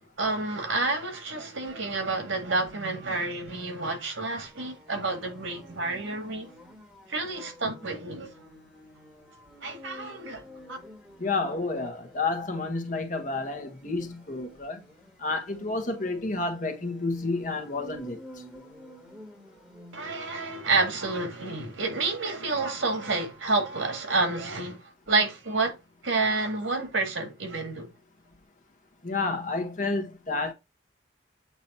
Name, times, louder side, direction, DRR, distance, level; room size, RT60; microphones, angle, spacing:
voice 1, 0.2-6.5 7.1-8.3 9.6-10.4 10.7-10.8 19.9-25.7 26.0-27.9, right 3 dB, 85° right, 2.0 m, -29 dB
sound 1, 4.4-21.0, equal, 5° right, 1.8 m, -51 dB
voice 2, 11.2-14.8 15.2-18.2 29.0-30.5, left 3 dB, 40° left, 1.2 m, -30 dB
8.3 x 3.0 x 4.2 m
head